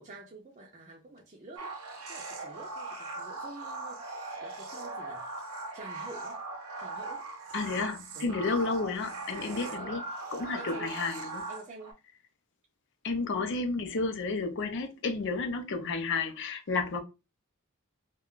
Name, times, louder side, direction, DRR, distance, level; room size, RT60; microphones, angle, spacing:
voice 1, 0.0-1.7 2.1-4.0 4.4-5.2 5.7-6.4 6.8-7.3 8.1-8.4 9.4-9.9 10.5-11.0 11.5-12.0, right 2 dB, 35° right, 0.5 m, -48 dB
sound 1, 1.6-11.9, right 3 dB, 75° right, 0.8 m, -40 dB
voice 2, 7.5-10.0 10.3-11.5 13.0-17.0, left 4 dB, 55° left, 0.5 m, -31 dB
2.4 x 2.2 x 3.6 m
head